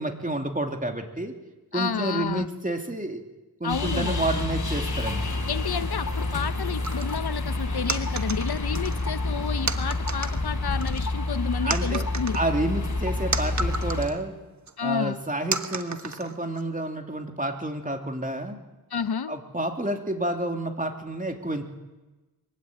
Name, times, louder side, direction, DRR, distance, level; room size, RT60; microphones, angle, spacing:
voice 1, 0.0-1.3 1.7-3.2 3.6-5.3 11.6-12.1 12.3-14.3 14.8-18.6 19.3-21.6, right 1 dB, 20° right, 4 dB, 2.9 m, -29 dB
voice 2, 1.7-2.5 3.6-4.2 5.5-12.4 14.8-15.2 18.9-19.3, left 7 dB, 80° left, 13 dB, 0.9 m, -30 dB
sound 1, 3.7-14.1, left 2 dB, 50° left, 4.9 m, -28 dB
sound 2, 6.8-7.2 7.9-9.0 9.7-10.4 10.8-11.4 11.7-14.2 14.7-14.8 15.5-16.6, right 4 dB, 45° right, 1.4 m, -32 dB
23.0 x 16.0 x 9.4 m, 1.1 s
wide cardioid pair, 70°, 38 cm